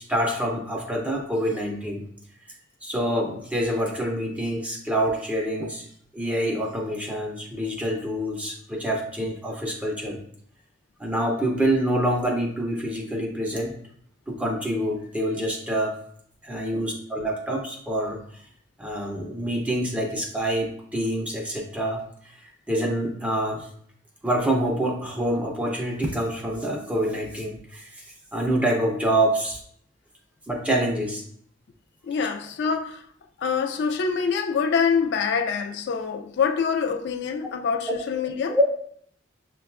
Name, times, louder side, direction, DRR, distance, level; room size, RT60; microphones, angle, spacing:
voice 1, 0.1-2.0 2.8-5.9 6.1-10.2 11.0-13.7 14.3-16.0 16.4-18.4 18.8-23.7 24.2-28.0 28.3-29.6 30.5-31.2 37.9-38.0 38.2-38.6, right 1 dB, 5° right, 0.4 m, -26 dB
voice 2, 32.1-33.0 33.4-38.6, left 6 dB, 65° left, 0.3 m, -25 dB
5.9 x 2.2 x 2.4 m
head